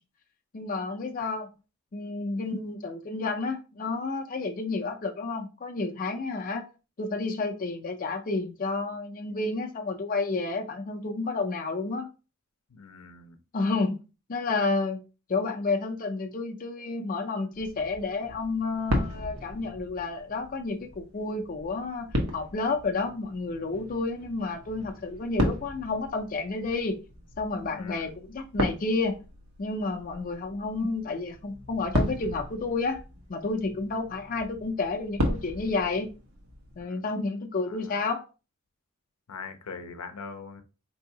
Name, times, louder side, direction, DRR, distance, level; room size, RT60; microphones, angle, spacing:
voice 1, 0.5-1.5 1.9-6.7 7.0-12.1 13.5-14.0 14.3-15.0 15.3-27.0 27.4-29.2 29.6-33.0 33.3-36.1 36.8-38.3, left 3 dB, 40° left, 0.5 m, -30 dB
voice 2, 12.7-13.4 27.7-28.1 36.8-37.2 37.7-38.0 39.3-40.6, left 5 dB, 90° left, 0.6 m, -42 dB
sound 1, 17.5-36.8, equal, 85° right, 1.1 m, -35 dB
4.4 x 2.7 x 2.8 m
head